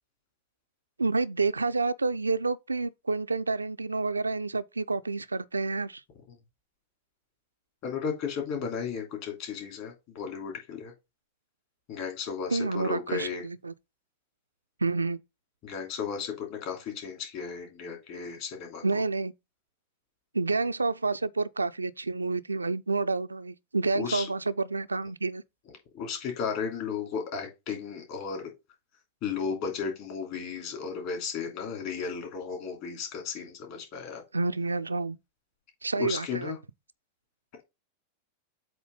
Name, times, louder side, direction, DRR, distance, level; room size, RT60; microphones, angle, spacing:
voice 1, 1.0-6.0 12.5-13.7 14.8-15.2 18.8-19.3 20.3-25.4 34.3-35.2 35.8-36.6, right 3 dB, 80° right, 0.3 m, -29 dB
voice 2, 7.8-10.9 11.9-13.4 15.6-18.8 23.9-24.3 25.9-28.5 29.2-34.2 36.0-36.6, left 6 dB, 45° left, 2.7 m, -34 dB
7.9 x 3.1 x 5.2 m
figure-of-eight pair, 90°, 0 cm